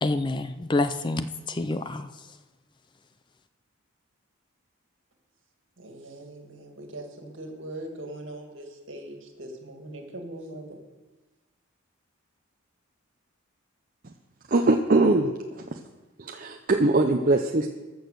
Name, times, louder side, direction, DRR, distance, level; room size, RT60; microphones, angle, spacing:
voice 1, 0.0-2.1, left 2 dB, 20° left, 12 dB, 0.4 m, -27 dB
voice 2, 5.8-10.8, right 1 dB, 65° right, 3 dB, 2.1 m, -41 dB
voice 3, 14.5-15.6 16.2-17.7, right 2 dB, 40° right, 4 dB, 0.6 m, -22 dB
14.5 x 6.4 x 6.7 m, 1.2 s
head